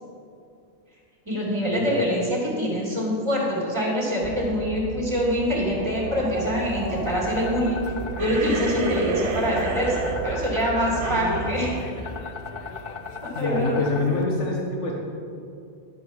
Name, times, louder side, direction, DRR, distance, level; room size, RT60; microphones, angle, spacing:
voice 1, 1.2-7.8 8.2-11.7 13.4-13.8, equal, 25° right, -4 dB, 2.9 m, -25 dB
sound 1, 4.2-11.2, right 6 dB, 50° right, 0.5 m, -33 dB
sound 2, 6.4-14.2, left 5 dB, 60° left, 0.8 m, -38 dB
sound 3, 8.2-12.9, right 3 dB, 85° right, 1.3 m, -31 dB
voice 2, 13.4-14.9, left 2 dB, 85° left, -2 dB, 1.6 m, -25 dB
11.0 x 7.7 x 5.5 m, 2.5 s
omnidirectional pair, 1.2 m